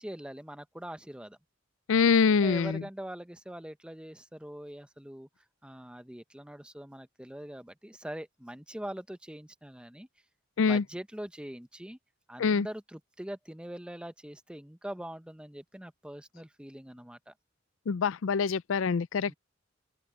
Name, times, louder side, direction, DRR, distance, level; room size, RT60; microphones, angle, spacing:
voice 1, 0.0-1.4 2.3-5.3 5.6-10.1 10.7-12.0 12.3-17.3 19.3-19.4, right 1 dB, 5° right, 0.8 m, -43 dB
voice 2, 1.9-2.8 10.6-10.8 12.4-12.7 17.9-19.3, left 5 dB, 70° left, 0.4 m, -25 dB
open air
head